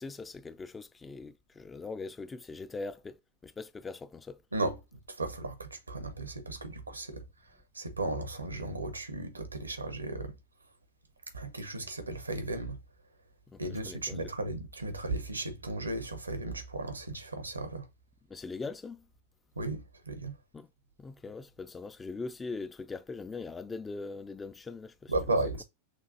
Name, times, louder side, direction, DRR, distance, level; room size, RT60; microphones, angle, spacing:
voice 1, 0.0-4.4 13.5-14.2 18.3-19.1 20.5-20.7 21.0-25.4, left 3 dB, 15° left, 0.3 m, -41 dB
voice 2, 5.1-7.2 7.7-10.3 11.3-12.8 13.6-17.8 19.6-20.4 25.1-25.6, right 2 dB, 80° right, 0.8 m, -35 dB
6.0 x 2.5 x 2.6 m
figure-of-eight pair, 90°, 0 cm